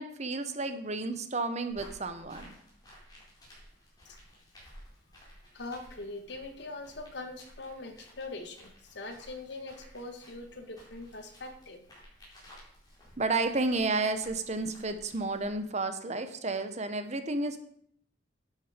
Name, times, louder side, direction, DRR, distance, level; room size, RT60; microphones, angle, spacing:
voice 1, 0.0-2.5 13.2-17.6, right 3 dB, 40° right, 9 dB, 1.0 m, -31 dB
sound 1, 1.7-15.6, equal, 20° left, 4.6 m, -55 dB
voice 2, 5.5-11.8, left 2 dB, 65° left, 6 dB, 1.6 m, -42 dB
11.5 x 7.8 x 5.1 m, 0.65 s
head